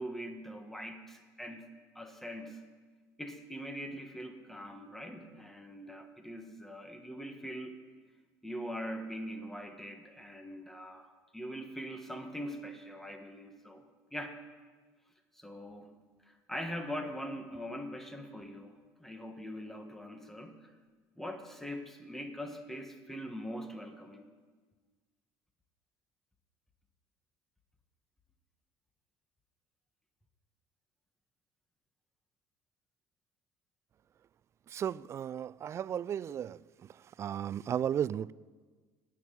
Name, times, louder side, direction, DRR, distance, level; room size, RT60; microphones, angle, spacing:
voice 1, 0.0-1.7 1.9-2.6 3.2-7.8 8.4-13.8 14.1-14.4 15.3-16.0 16.3-20.7 21.2-24.3, equal, 5° left, 5 dB, 1.7 m, -42 dB
voice 2, 34.7-36.6 37.2-38.3, right 9 dB, 40° right, 21 dB, 0.3 m, -34 dB
17.5 x 6.2 x 9.5 m, 1.4 s
supercardioid pair, 95°, 7 cm